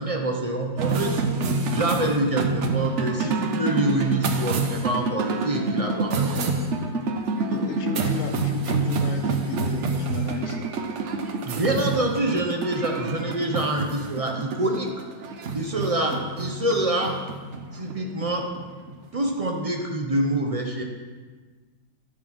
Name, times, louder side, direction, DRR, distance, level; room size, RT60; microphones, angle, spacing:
voice 1, 0.0-1.3 1.7-6.3 11.4-14.9 15.5-17.2 17.7-18.5 19.1-20.8, right 1 dB, 30° right, 2 dB, 0.7 m, -26 dB
voice 2, 0.8-1.3 3.2-3.4 7.5-10.7 16.1-16.3, left 5 dB, 60° left, 5 dB, 1.0 m, -35 dB
sound 1, 0.8-19.4, right 3 dB, 55° right, 1.0 m, -27 dB
12.0 x 4.9 x 6.0 m, 1.4 s
omnidirectional pair, 1.7 m